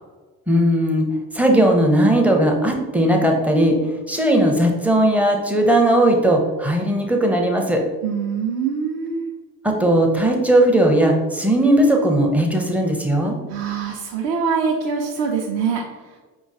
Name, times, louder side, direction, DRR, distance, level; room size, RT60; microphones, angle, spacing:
voice 1, 0.5-3.8 4.1-7.8 9.6-13.4, right 1 dB, 5° right, 1 dB, 0.6 m, -17 dB
voice 2, 8.0-9.3 13.5-15.8, right 6 dB, 45° right, -1 dB, 0.6 m, -24 dB
5.1 x 3.0 x 2.5 m, 1.3 s
figure-of-eight pair, 55°, 50 cm